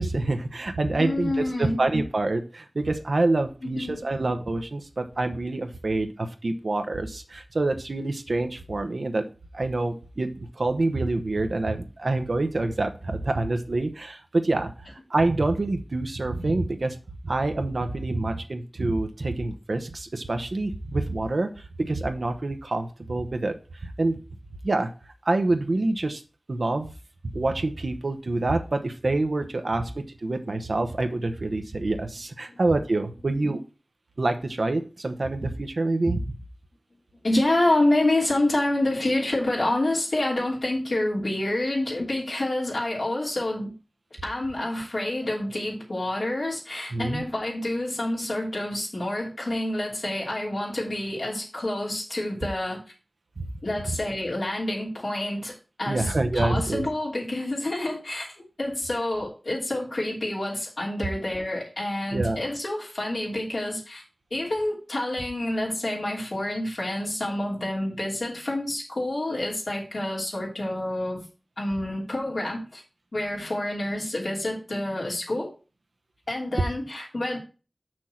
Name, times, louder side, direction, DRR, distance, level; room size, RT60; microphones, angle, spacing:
voice 1, 0.0-9.2 9.5-17.0 17.2-23.5 23.8-24.2 24.6-24.9 25.2-26.2 26.5-26.9 27.3-33.6 34.2-36.2 46.9-47.2 53.4-53.5 53.9-54.0 55.9-56.9 62.1-62.4, right 2 dB, 80° right, 7 dB, 0.9 m, -26 dB
voice 2, 1.0-1.8 3.6-4.0 32.5-32.6 37.2-43.7 44.2-52.8 53.6-64.0 64.3-71.2 71.6-72.8 73.1-75.5 76.3-77.4, left 1 dB, 80° left, -4 dB, 3.0 m, -28 dB
6.3 x 6.2 x 4.4 m, 0.35 s
wide cardioid pair, 45°, 0 cm